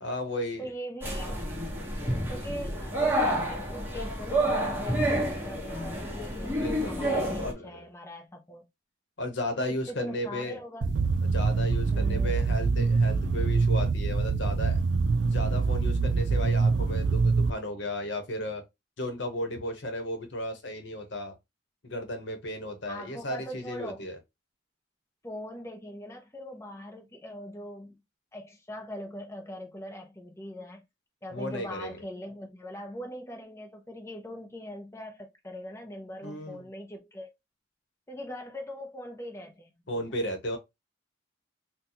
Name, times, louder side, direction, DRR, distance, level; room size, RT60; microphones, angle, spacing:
voice 1, 0.0-0.7 6.4-7.0 7.4-7.7 9.2-10.6 11.2-14.8 15.3-18.6 19.0-21.3 21.8-24.2 31.3-32.0 36.2-36.6 39.9-40.6, left 1 dB, 70° left, 0.9 m, -34 dB
voice 2, 0.6-1.4 2.3-8.7 9.6-10.9 11.9-12.3 22.9-24.0 25.2-27.9 28.3-30.8 31.2-37.3 38.1-40.0, equal, 15° left, 0.6 m, -41 dB
sound 1, 1.0-7.5, right 1 dB, 10° right, 1.0 m, -29 dB
sound 2, 10.8-17.5, right 4 dB, 60° right, 0.4 m, -25 dB
3.9 x 2.2 x 2.8 m
head